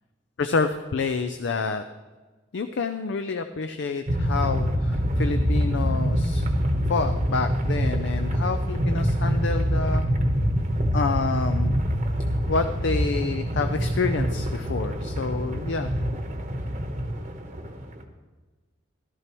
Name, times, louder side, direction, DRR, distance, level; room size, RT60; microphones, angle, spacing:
voice 1, 0.4-1.8 2.5-6.5 6.9-10.0 10.9-11.8 12.5-15.9, left 4 dB, 60° left, 8 dB, 0.5 m, -28 dB
sound 1, 4.1-18.0, equal, 40° right, 1.0 m, -25 dB
14.0 x 12.5 x 3.0 m, 1.3 s
head